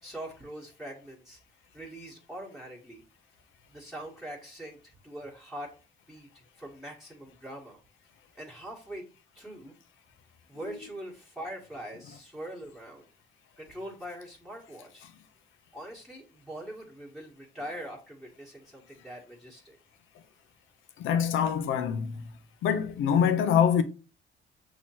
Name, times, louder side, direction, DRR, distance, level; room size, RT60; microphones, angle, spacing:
voice 1, 0.0-1.4 1.7-3.0 3.7-4.8 5.0-5.7 6.1-7.8 8.3-9.0 9.3-9.7 10.5-13.0 13.6-15.1 15.7-19.8, right 1 dB, ahead, 1.4 m, -42 dB
voice 2, 21.0-22.3 22.6-23.8, left 8 dB, 85° left, 0.6 m, -25 dB
6.1 x 2.9 x 2.9 m
cardioid pair, 90°, 20 cm